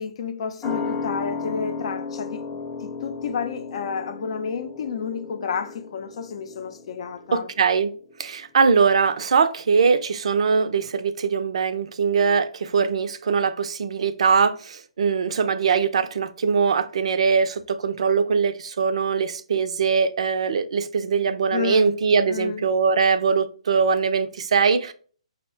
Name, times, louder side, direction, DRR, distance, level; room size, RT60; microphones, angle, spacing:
voice 1, 0.0-2.4 2.8-7.5 21.5-21.9 22.3-22.7, left 6 dB, 55° left, 0.6 m, -30 dB
sound 1, 0.6-7.7 8.0-8.1, left 4 dB, 20° left, 0.7 m, -34 dB
voice 2, 7.3-7.9 8.2-24.9, right 5 dB, 60° right, 0.5 m, -21 dB
5.4 x 2.1 x 4.3 m
figure-of-eight pair, 135°, 4 cm